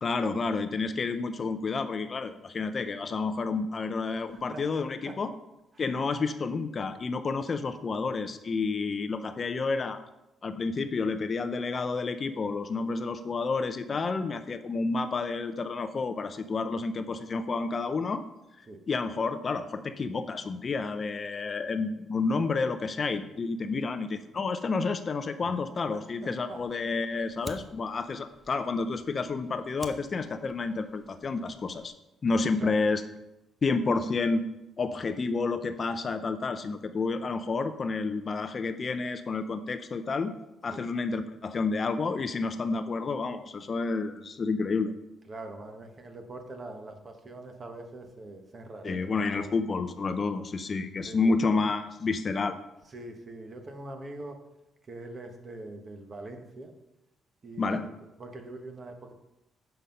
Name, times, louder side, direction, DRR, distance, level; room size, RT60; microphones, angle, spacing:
voice 1, 0.0-5.3 5.8-10.0 10.4-18.2 18.9-31.9 32.2-33.0 33.6-34.4 34.8-40.3 40.6-44.9 48.8-52.6 57.6-57.9, left 4 dB, 35° left, 10 dB, 0.5 m, -30 dB
voice 2, 4.2-4.6 5.0-5.1 5.7-6.0 18.7-18.8 25.4-25.5 25.9-26.6 32.6-32.8 40.7-40.9 45.3-49.5 51.0-51.4 52.9-54.4 54.9-56.7 57.4-57.9 58.2-59.1, right 2 dB, 35° right, 5 dB, 1.2 m, -43 dB
Fire, 26.5-31.9, right 2 dB, 15° right, 0.7 m, -50 dB
8.3 x 5.7 x 5.3 m, 0.93 s
cardioid pair, 125°, 0 cm